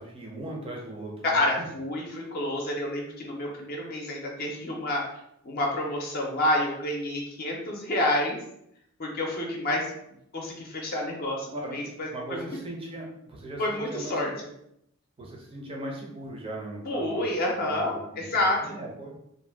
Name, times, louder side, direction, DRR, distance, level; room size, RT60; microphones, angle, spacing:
voice 1, 0.0-1.4 11.5-11.8 12.1-14.4 15.2-17.3 17.6-19.1, right 1 dB, 25° right, -2 dB, 0.5 m, -39 dB
voice 2, 1.2-5.0 5.4-8.4 9.0-9.9 10.3-12.6 13.6-14.3 16.9-18.7, left 1 dB, 45° left, -1 dB, 0.5 m, -29 dB
2.5 x 2.2 x 3.3 m, 0.77 s
head